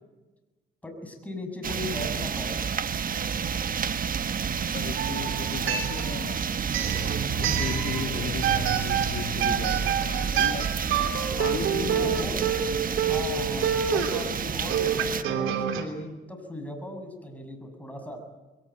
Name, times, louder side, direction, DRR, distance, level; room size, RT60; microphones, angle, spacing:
voice 1, 0.8-2.6 7.3-8.4 9.4-9.7 11.8-12.4 13.0-18.2, left 1 dB, 5° left, 3 dB, 7.0 m, -38 dB
sound 1, 1.6-15.2, right 7 dB, 45° right, 1.2 m, -30 dB
voice 2, 4.7-6.4 7.4-10.7 11.4-12.2, left 7 dB, 70° left, 5 dB, 2.2 m, -36 dB
sound 2, 5.0-6.3 6.7-8.1 8.4-15.8, right 8 dB, 90° right, 3.2 m, -28 dB
sound 3, 6.8-10.5, right 5 dB, 60° right, 3.4 m, -35 dB
22.5 x 18.5 x 9.1 m, 1.2 s
cardioid pair, 90°, 20 cm